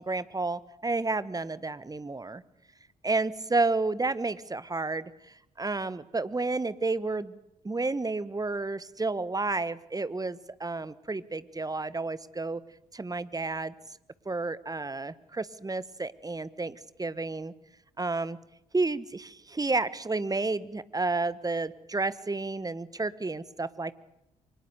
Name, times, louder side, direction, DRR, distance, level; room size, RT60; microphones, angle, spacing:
voice 1, 0.0-2.4 3.0-7.4 7.6-12.6 12.9-13.7 14.2-17.5 18.0-18.4 18.7-23.9, right 3 dB, 20° right, 17 dB, 1.4 m, -31 dB
24.5 x 19.5 x 8.2 m, 0.83 s
figure-of-eight pair, 45°, 19 cm